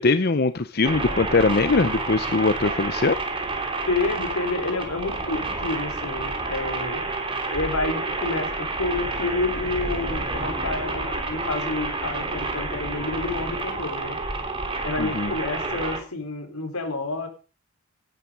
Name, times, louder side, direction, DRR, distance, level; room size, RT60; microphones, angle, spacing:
voice 1, 0.0-3.2 15.0-15.3, left 3 dB, 45° left, 11 dB, 0.7 m, -21 dB
sound 1, 0.8-16.0, right 3 dB, 25° right, 3.4 m, -29 dB
voice 2, 3.9-7.1 7.5-14.2 14.8-17.3, left 2 dB, 80° left, 6 dB, 4.5 m, -29 dB
18.5 x 11.0 x 5.3 m, 0.35 s
head